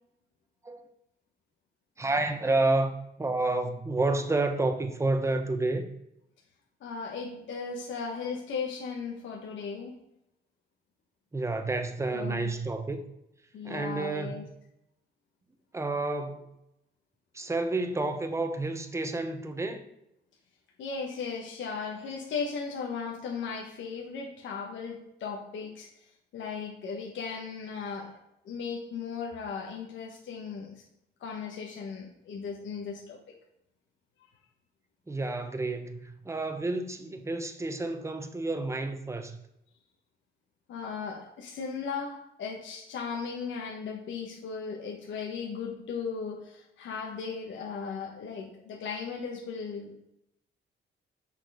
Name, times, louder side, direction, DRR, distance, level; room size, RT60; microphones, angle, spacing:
voice 1, 2.0-5.9 11.3-13.0 13.6-14.4 15.7-16.5 17.3-19.9 35.1-39.4, right 2 dB, 15° right, 0.8 m, -30 dB
voice 2, 6.8-10.0 12.1-12.5 13.5-14.4 20.8-25.9 26.3-28.2 28.4-30.8 31.2-33.2 40.7-49.9, left 5 dB, 70° left, 1.2 m, -37 dB
6.5 x 4.2 x 4.9 m
cardioid pair, 90°, 20 cm